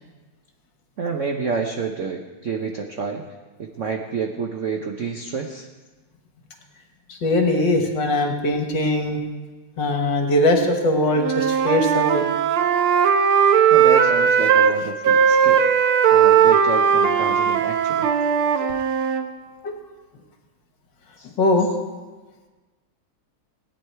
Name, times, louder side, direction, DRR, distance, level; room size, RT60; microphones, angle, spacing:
voice 1, 1.0-3.2 3.6-5.7 13.7-15.6 16.1-18.1 21.2-21.3, right 5 dB, 60° right, 3 dB, 0.7 m, -29 dB
voice 2, 7.1-9.2 9.8-12.2 19.6-19.8 21.4-21.7, left 1 dB, 60° left, 3 dB, 2.1 m, -20 dB
Wind instrument woodwind instrument, 11.2-14.7 15.0-19.3, right 7 dB, 85° right, 1.7 m, -18 dB
17.0 x 9.6 x 4.6 m, 1.3 s
omnidirectional pair, 2.3 m